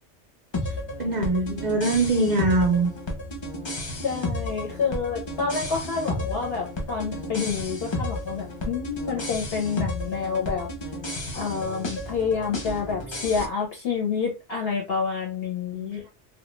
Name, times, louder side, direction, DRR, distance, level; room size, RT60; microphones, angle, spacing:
sound 1, 0.5-13.5, left 1 dB, 35° left, 0.4 m, -32 dB
voice 1, 1.0-2.9 15.7-16.1, right 2 dB, 60° right, 0.4 m, -23 dB
voice 2, 4.0-10.7 11.3-16.0, left 6 dB, 60° left, 0.8 m, -28 dB
2.2 x 2.2 x 3.0 m
omnidirectional pair, 1.3 m